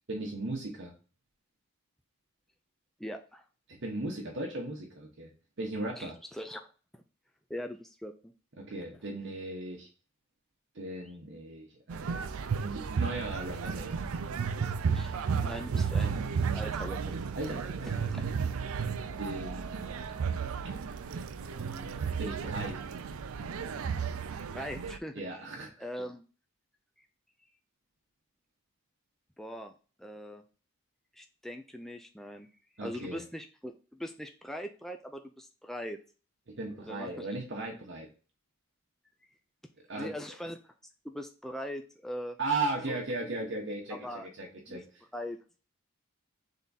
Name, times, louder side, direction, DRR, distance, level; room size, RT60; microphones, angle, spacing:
voice 1, 0.1-0.9 3.8-5.3 5.6-6.1 8.6-9.9 10.7-12.3 12.6-14.1 17.3-18.4 19.2-20.2 21.5-22.8 25.1-25.7 32.8-33.2 36.5-38.1 39.9-40.2 42.4-44.8, right 2 dB, 55° right, -1 dB, 1.0 m, -37 dB
voice 2, 3.0-3.4 6.0-6.7 6.9-7.0 7.5-8.3 8.8-8.9 10.9-11.1 12.0-12.1 14.9-15.1 15.4-17.6 17.8-18.2 24.5-25.2 25.8-26.2 27.0-27.1 29.4-29.7 30.0-30.4 31.1-32.5 32.8-36.0 36.8-37.3 40.0-40.6 41.0-42.4 42.9-43.0 43.9-44.3 44.7-44.8 45.1-45.4, equal, ahead, 4 dB, 0.3 m, -41 dB
sound 1, 11.9-25.0, right 6 dB, 80° right, 0.4 m, -33 dB
3.7 x 3.5 x 4.0 m, 0.36 s
head